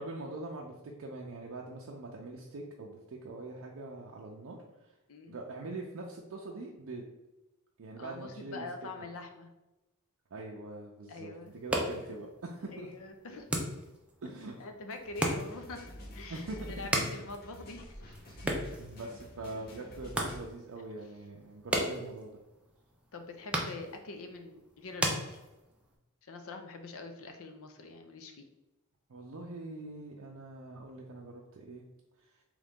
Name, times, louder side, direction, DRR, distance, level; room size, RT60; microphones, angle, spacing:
voice 1, 0.0-4.9 5.3-7.0 7.8-8.7 10.3-12.9 14.2-14.6 16.3-16.9 18.3-18.5 18.8-22.4 29.1-31.8, right 2 dB, 65° right, -1 dB, 0.5 m, -43 dB
voice 2, 8.0-9.5 11.1-12.2 12.7-13.5 14.3-18.0 23.1-25.4 26.2-28.4, left 2 dB, 65° left, 6 dB, 0.6 m, -45 dB
sound 1, 11.4-25.9, right 1 dB, 5° right, 0.5 m, -38 dB
sound 2, 15.0-20.4, equal, 45° left, 0.9 m, -48 dB
3.8 x 3.2 x 3.5 m, 1.0 s
head